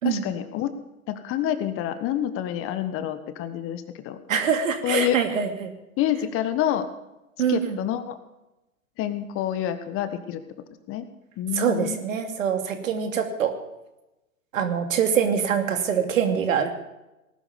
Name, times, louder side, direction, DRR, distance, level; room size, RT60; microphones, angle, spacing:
voice 1, 0.0-0.7 1.1-4.2 4.8-5.2 6.0-6.8 7.5-8.2 9.0-10.4 10.9-11.0 11.4-12.0, left 11 dB, 30° left, 11 dB, 1.3 m, -27 dB
voice 2, 4.3-5.7 7.4-7.8 11.6-13.6 14.5-16.7, right 7 dB, 65° right, 6 dB, 2.7 m, -24 dB
19.0 x 12.0 x 5.2 m, 0.97 s
hypercardioid pair, 110°, 42 cm